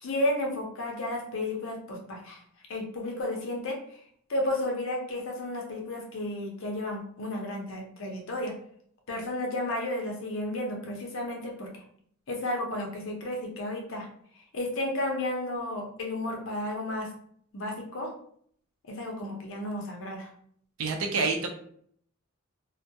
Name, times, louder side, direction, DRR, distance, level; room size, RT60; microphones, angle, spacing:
voice 1, 0.0-2.4 2.7-3.8 4.3-8.5 9.1-11.8 12.3-14.1 14.5-17.1 17.5-18.1 18.9-20.3, left 1 dB, 65° left, 1 dB, 0.7 m, -32 dB
voice 2, 20.8-21.5, right 4 dB, 80° right, 3 dB, 0.5 m, -27 dB
2.2 x 2.1 x 2.7 m, 0.62 s
head